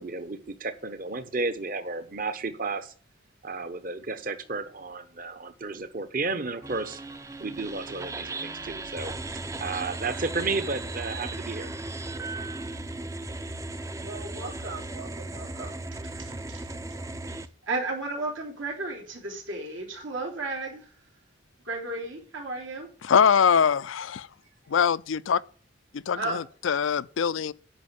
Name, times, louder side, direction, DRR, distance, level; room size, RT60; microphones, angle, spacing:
voice 1, 0.0-2.9 3.4-7.0 7.4-9.1 9.6-11.7, right 3 dB, 45° right, 1.0 m, -32 dB
sound 1, 6.6-17.5, right 2 dB, 15° right, 0.5 m, -36 dB
voice 2, 14.0-16.7 17.7-20.9 21.6-22.9 26.1-26.4, right 2 dB, 80° right, 3.5 m, -34 dB
voice 3, 23.0-24.3 24.7-25.4 25.9-27.5, left 7 dB, 80° left, 0.4 m, -23 dB
10.5 x 5.5 x 8.2 m
head